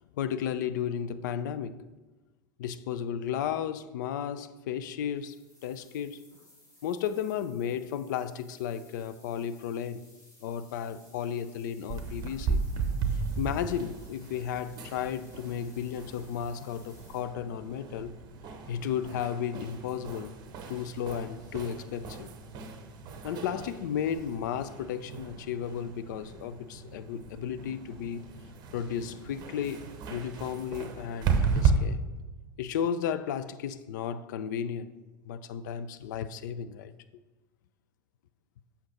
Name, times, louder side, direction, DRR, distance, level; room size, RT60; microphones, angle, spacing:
voice 1, 0.0-1.9 2.6-5.4 5.6-6.2 6.8-10.0 10.4-12.6 13.4-18.2 18.7-20.3 20.7-22.3 23.2-28.3 28.7-32.0 32.6-34.9 35.3-36.9, left 8 dB, 60° left, 0.4 m, -34 dB
sound 1, 4.8-17.2, left 1 dB, 30° left, 2.6 m, -59 dB
sound 2, 11.9-31.7, right 6 dB, 40° right, 0.9 m, -35 dB
7.8 x 5.7 x 4.1 m
figure-of-eight pair, 85°, 11 cm